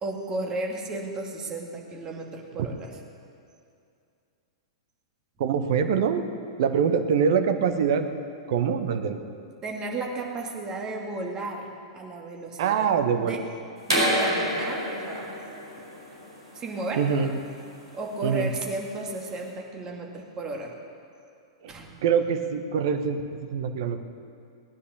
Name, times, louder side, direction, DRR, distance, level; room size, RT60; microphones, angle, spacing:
voice 1, 0.0-3.0 9.6-12.9 13.2-13.4 13.9-15.3 16.5-17.4 17.9-20.7 21.7-22.0, right 2 dB, 25° right, 1 dB, 2.2 m, -34 dB
voice 2, 5.4-6.2 6.6-8.1 8.5-9.2 12.6-13.4 17.0-17.3 18.2-18.5 21.6-21.7 22.0-23.2 23.5-24.0, right 7 dB, 55° right, 8 dB, 1.1 m, -24 dB
sound 1, 13.8-19.4, equal, 75° right, 5.1 m, -29 dB
19.0 x 9.9 x 6.8 m, 2.5 s
figure-of-eight pair, 100°, 3 cm